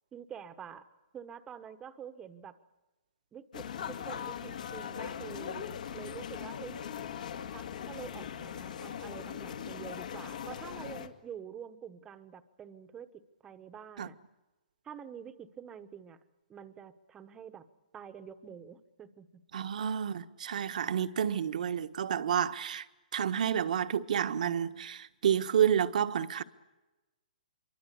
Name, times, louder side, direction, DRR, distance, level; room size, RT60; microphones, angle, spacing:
voice 1, 0.1-0.9 1.1-2.6 3.3-6.9 7.5-13.1 13.4-14.1 14.8-16.2 16.5-17.6 17.9-19.4, right 8 dB, 15° right, 1.2 m, -47 dB
sound 1, 3.5-11.1, left 8 dB, 60° left, 2.1 m, -40 dB
voice 2, 19.5-22.9 23.1-26.4, right 8 dB, 60° right, 1.4 m, -30 dB
26.5 x 24.0 x 8.4 m
hypercardioid pair, 155°, 5 cm